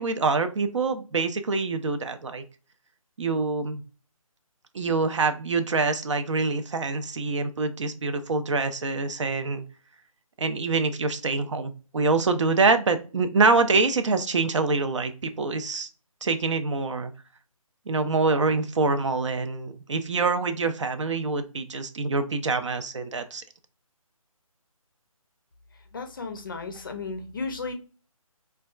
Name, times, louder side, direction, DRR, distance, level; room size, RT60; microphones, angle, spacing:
voice 1, 0.0-2.4 3.2-3.8 4.7-9.6 10.4-15.9 16.2-17.1 17.9-23.4, right 3 dB, 55° right, 9 dB, 0.4 m, -25 dB
voice 2, 25.9-27.7, left 4 dB, 35° left, 6 dB, 0.5 m, -34 dB
4.1 x 2.2 x 2.3 m, 0.36 s
figure-of-eight pair, 155°, 18 cm